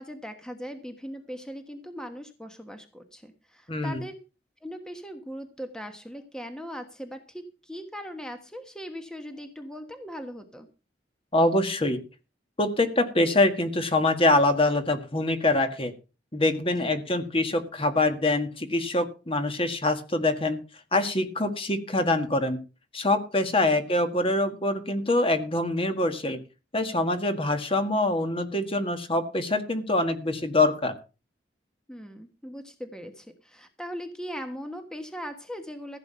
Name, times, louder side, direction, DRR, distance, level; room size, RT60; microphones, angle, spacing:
voice 1, 0.0-4.2 4.6-10.7 16.8-16.9 31.9-36.0, equal, 5° left, 6 dB, 1.3 m, -39 dB
voice 2, 3.7-4.0 11.3-12.0 12.6-15.9 16.3-20.6 20.9-22.6 22.9-26.4 26.7-30.9, left 2 dB, 30° left, 8 dB, 1.7 m, -24 dB
15.5 x 8.4 x 5.7 m, 0.33 s
head